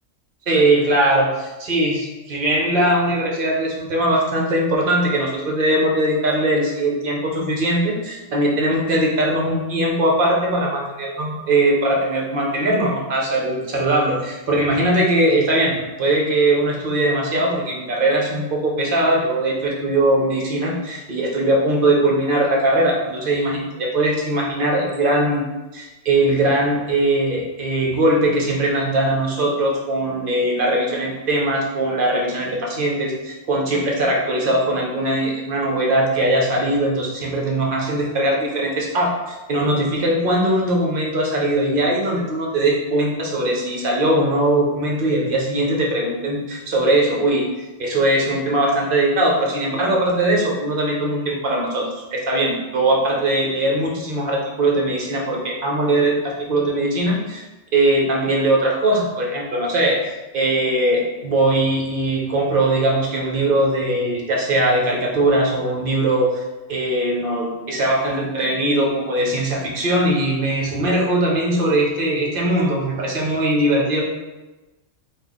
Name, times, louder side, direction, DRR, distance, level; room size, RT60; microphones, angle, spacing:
voice 1, 0.5-25.4 25.7-47.4 47.8-57.4 57.7-60.0 60.3-66.4 66.7-74.0, right 1 dB, 55° right, -1 dB, 0.8 m, -20 dB
3.2 x 2.3 x 3.8 m, 1.1 s
omnidirectional pair, 1.3 m